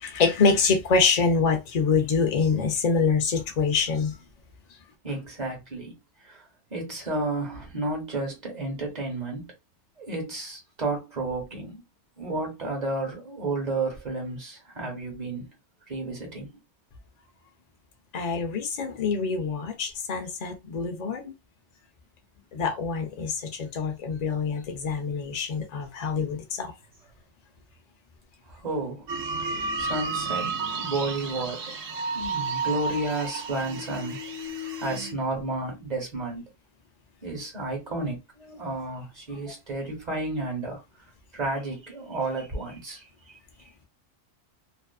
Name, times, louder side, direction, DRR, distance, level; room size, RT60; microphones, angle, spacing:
voice 1, 0.0-4.2 18.1-21.3 22.5-26.7, left 5 dB, 70° left, 0.4 m, -25 dB
voice 2, 5.0-6.0 6.2-6.4 6.7-9.5 10.0-11.8 12.2-15.5 15.9-16.6 28.5-29.1 29.8-31.7 32.1-34.2 34.8-36.4 37.2-40.8 41.3-43.4, right 2 dB, 35° right, 1.0 m, -32 dB
sound 1, 29.1-35.1, right 4 dB, 70° right, 1.0 m, -32 dB
2.5 x 2.4 x 2.3 m
omnidirectional pair, 1.4 m